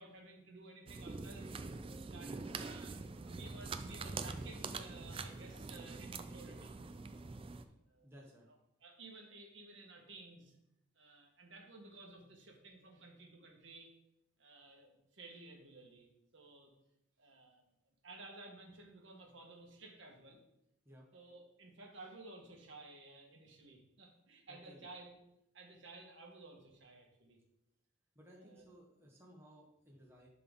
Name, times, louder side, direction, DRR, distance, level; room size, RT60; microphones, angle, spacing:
voice 1, 0.0-1.6 2.1-2.9 3.2-6.7 7.7-8.1 8.5-8.6 8.8-10.5 10.9-13.9 14.4-16.7 17.2-17.6 18.0-20.4 21.1-25.2 25.5-27.4 28.4-28.6, right 2 dB, 70° right, 1 dB, 1.5 m, -55 dB
sound 1, 0.9-7.6, right 4 dB, 25° right, 0.3 m, -45 dB
voice 2, 2.2-2.6 8.0-8.5 20.8-21.1 24.5-24.9 28.1-30.3, equal, 10° right, -2 dB, 1.1 m, -58 dB
10.5 x 3.9 x 3.8 m, 0.83 s
head